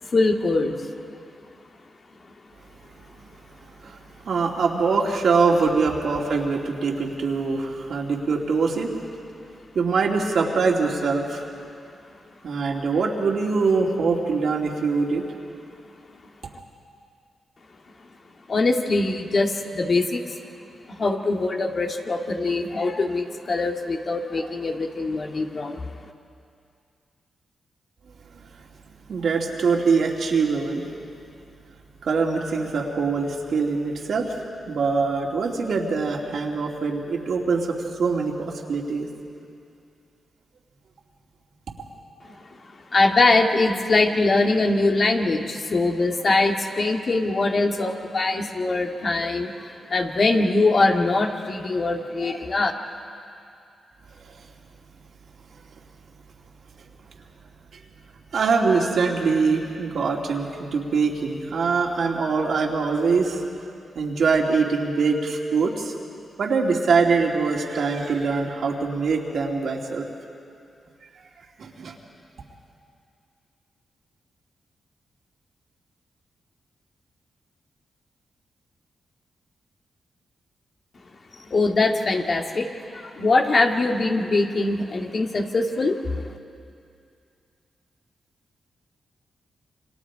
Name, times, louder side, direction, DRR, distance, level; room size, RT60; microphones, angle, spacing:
voice 1, 0.0-0.9 18.5-20.4 20.9-25.9 42.9-52.7 81.3-86.2, left 3 dB, 55° left, 2 dB, 2.2 m, -22 dB
voice 2, 4.3-9.0 9.7-11.4 12.4-15.2 29.1-30.8 32.0-34.4 34.7-39.1 58.3-63.4 63.9-65.9 66.4-70.1 71.6-71.9, right 4 dB, 70° right, -1 dB, 2.8 m, -23 dB
28.0 x 25.5 x 4.9 m, 2.5 s
cardioid pair, 55°, 0 cm